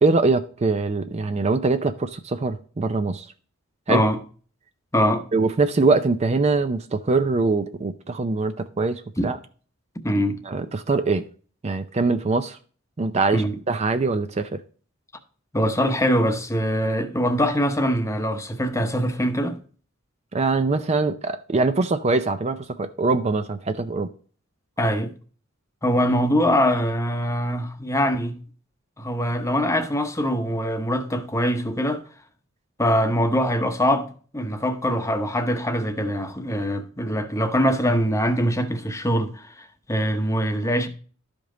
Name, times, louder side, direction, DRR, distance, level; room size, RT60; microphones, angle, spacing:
voice 1, 0.0-3.3 3.9-4.1 5.3-9.4 10.5-11.2 11.6-12.6 13.0-14.6 20.3-24.1, right 3 dB, 30° right, 0.5 m, -23 dB
voice 2, 3.9-4.2 4.9-5.2 9.2-9.3 10.0-10.4 13.3-13.6 15.5-19.6 24.8-25.1 25.8-28.4 29.0-32.0 32.8-34.1 34.3-40.9, equal, 15° left, 0.9 m, -23 dB
12.0 x 5.3 x 3.8 m
head